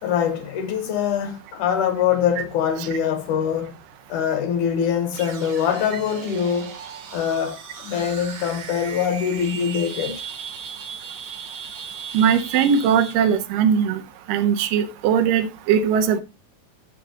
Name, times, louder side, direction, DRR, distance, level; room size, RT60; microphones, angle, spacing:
voice 1, 0.0-3.7 4.1-6.8 7.1-10.2, left 8 dB, 70° left, 2.2 m, -23 dB
sound 1, 5.1-13.4, right 6 dB, 55° right, 1.6 m, -37 dB
voice 2, 12.1-14.0 14.3-16.2, right 7 dB, 80° right, 2.5 m, -19 dB
12.5 x 6.6 x 2.8 m
omnidirectional pair, 3.9 m